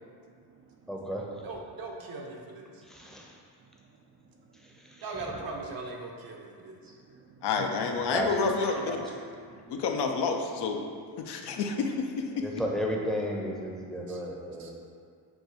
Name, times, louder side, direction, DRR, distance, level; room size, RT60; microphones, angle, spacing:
voice 1, 0.4-1.1 2.8-3.2 3.6-5.0 6.8-7.7 8.1-8.2 8.6-9.8 11.2-11.4 13.3-13.4 13.9-14.2 14.5-14.7, right 2 dB, 30° right, -2 dB, 0.4 m, -49 dB
voice 2, 0.9-1.2 2.9-3.2 7.9-8.3 8.8-8.9 12.4-14.7, equal, ahead, -2 dB, 0.7 m, -33 dB
voice 3, 1.4-2.8 5.0-6.8 14.1-14.2 14.6-14.7, right 3 dB, 50° right, 0 dB, 0.8 m, -40 dB
voice 4, 7.4-9.0 9.7-10.8 11.2-12.5, left 4 dB, 60° left, 3 dB, 0.6 m, -29 dB
5.8 x 2.3 x 3.9 m, 2.2 s
supercardioid pair, 65°, 46 cm